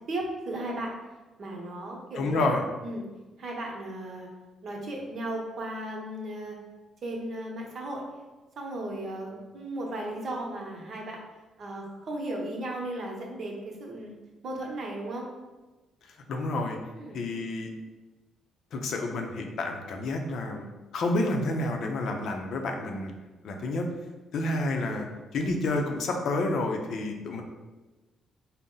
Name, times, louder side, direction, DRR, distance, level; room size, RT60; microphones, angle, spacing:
voice 1, 0.1-0.9 1.4-2.5 2.8-3.1 3.4-4.3 4.6-6.6 7.0-8.0 8.6-11.2 11.6-14.1 14.4-15.3 16.9-17.3, right 1 dB, 55° right, -1 dB, 0.9 m, -35 dB
voice 2, 2.2-2.6 16.3-16.8 17.1-17.7 18.7-20.7 20.9-23.1 23.4-23.9 24.3-25.1 25.3-27.4, left 2 dB, 70° left, 3 dB, 0.5 m, -29 dB
4.0 x 2.1 x 3.7 m, 1.2 s
cardioid pair, 90°, 0 cm